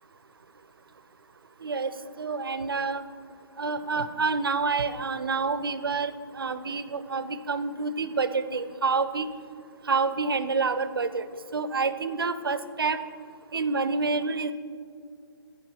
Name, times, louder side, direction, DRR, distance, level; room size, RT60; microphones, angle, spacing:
voice 1, 1.6-1.9 2.2-3.0 3.6-9.3 9.9-11.2 11.5-13.0 13.5-14.5, right 4 dB, 65° right, 13 dB, 0.5 m, -28 dB
9.6 x 5.0 x 4.5 m, 2.3 s
figure-of-eight pair, 135°, 13 cm